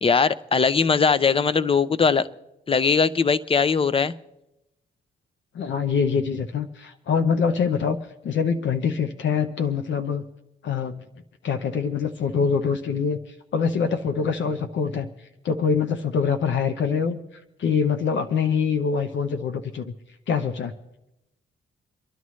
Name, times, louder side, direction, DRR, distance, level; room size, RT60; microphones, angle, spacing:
voice 1, 0.0-2.3 2.7-4.1, left 5 dB, 30° left, 15 dB, 0.6 m, -20 dB
voice 2, 5.5-8.0 8.2-10.2 10.6-11.0 11.4-13.2 13.5-15.1 15.4-17.2 17.6-19.9 20.3-20.7, left 6 dB, 70° left, 7 dB, 0.8 m, -24 dB
27.5 x 11.0 x 3.2 m, 0.91 s
cardioid pair, 80°, 20 cm